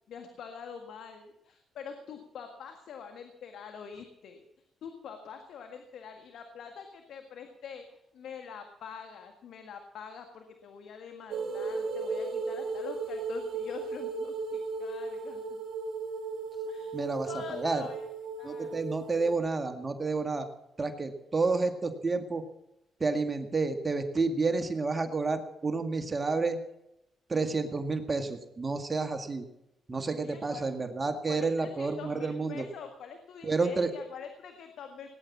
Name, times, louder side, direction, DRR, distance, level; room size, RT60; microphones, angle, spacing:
voice 1, 0.1-4.4 4.8-15.6 16.7-17.0 17.2-18.1 18.4-18.8 30.1-30.7 31.3-35.1, left 7 dB, 75° left, 6 dB, 1.8 m, -45 dB
sound 1, 11.3-19.4, right 4 dB, 60° right, 3.1 m, -36 dB
voice 2, 16.9-17.8 18.4-20.5 20.8-22.4 23.0-26.6 27.3-29.5 29.9-32.7 33.4-33.9, right 3 dB, 30° right, 7 dB, 1.9 m, -30 dB
19.0 x 10.0 x 7.2 m, 0.85 s
cardioid pair, 75°, 0 cm